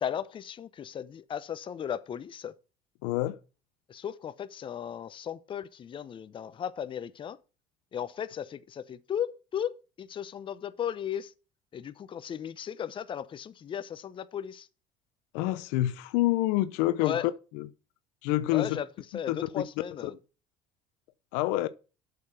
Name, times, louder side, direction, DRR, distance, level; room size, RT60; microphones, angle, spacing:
voice 1, 0.0-2.5 3.9-7.4 7.9-11.3 11.7-14.7 17.0-17.3 18.5-18.9 19.1-20.2, left 9 dB, 35° left, 0.8 m, -36 dB
voice 2, 3.0-3.4 15.3-17.2 17.6-17.7 18.2-18.8 19.3-19.4 21.3-21.7, left 16 dB, 80° left, 0.8 m, -27 dB
8.2 x 7.0 x 5.7 m
supercardioid pair, 95°, 14 cm